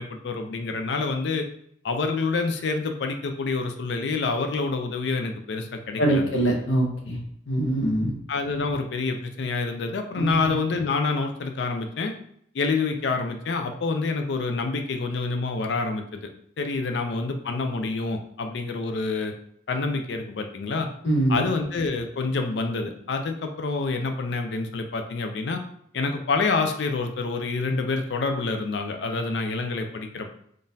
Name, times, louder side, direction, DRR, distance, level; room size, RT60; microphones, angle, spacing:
voice 1, 0.0-1.5 1.8-6.3 8.3-12.1 12.5-16.3 16.6-19.3 19.7-20.9 21.3-25.6 25.9-30.3, left 3 dB, 65° left, 5 dB, 0.4 m, -27 dB
voice 2, 6.0-7.2 7.5-8.1 10.2-10.5 21.0-21.4, right 1 dB, 85° left, 0 dB, 0.8 m, -23 dB
3.7 x 2.4 x 2.6 m, 0.68 s
head